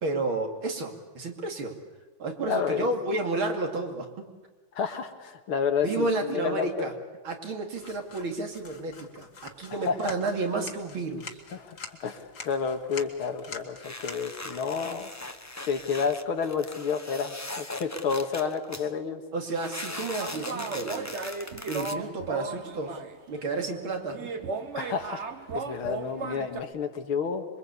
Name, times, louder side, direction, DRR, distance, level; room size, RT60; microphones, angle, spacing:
voice 1, 0.0-1.7 2.2-4.2 5.8-6.9 7.2-11.3 19.3-21.2 21.7-23.0 23.3-24.3, right 3 dB, 75° right, 3 dB, 3.3 m, -31 dB
voice 2, 2.5-2.9 4.7-6.9 9.7-10.1 11.5-15.1 15.6-19.2 24.8-25.2 25.5-27.5, left 6 dB, 85° left, 6 dB, 2.6 m, -30 dB
sound 1, 7.7-16.8, left 5 dB, 50° left, 2.2 m, -47 dB
sound 2, 13.8-18.9 19.6-21.9, left 2 dB, 15° left, 0.6 m, -40 dB
sound 3, 20.2-23.2 23.7-23.8 24.1-26.6, right 4 dB, 40° right, 1.3 m, -36 dB
27.0 x 22.5 x 8.4 m, 1.2 s
omnidirectional pair, 2.3 m